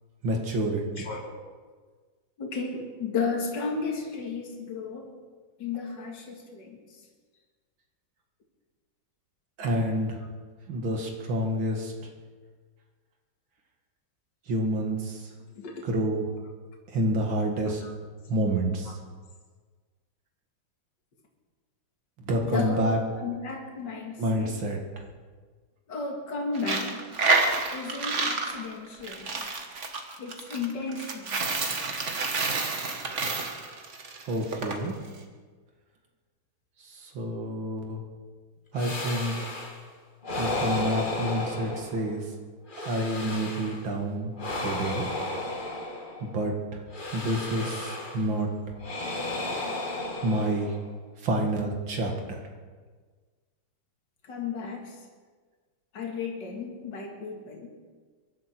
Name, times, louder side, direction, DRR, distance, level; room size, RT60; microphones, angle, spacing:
voice 1, 0.2-0.8 9.6-10.2 10.7-11.9 14.5-15.3 15.8-16.2 16.9-17.8 18.3-18.9 22.2-23.0 24.2-24.8 34.3-35.0 36.8-38.0 38.7-39.4 40.4-42.3 42.7-44.3 44.6-45.1 46.2-46.8 47.1-48.5 50.2-50.7 51.2-52.4, right 1 dB, 75° right, 1 dB, 2.7 m, -28 dB
voice 2, 1.0-1.4 2.4-5.1 5.6-7.0 15.6-15.9 17.5-17.9 22.5-22.9 23.1-24.6 25.9-27.0 27.7-29.3 30.2-31.4 54.2-55.0 55.9-57.7, left 4 dB, 60° left, 0 dB, 2.7 m, -34 dB
Coin (dropping), 26.5-34.8, right 3 dB, 40° right, 1.6 m, -29 dB
sound 1, 38.8-39.8 40.2-42.2 42.7-43.9 44.4-46.4 46.9-48.3 48.8-50.9, left 2 dB, 25° left, 1.7 m, -33 dB
24.0 x 11.5 x 4.5 m, 1.5 s
omnidirectional pair, 2.1 m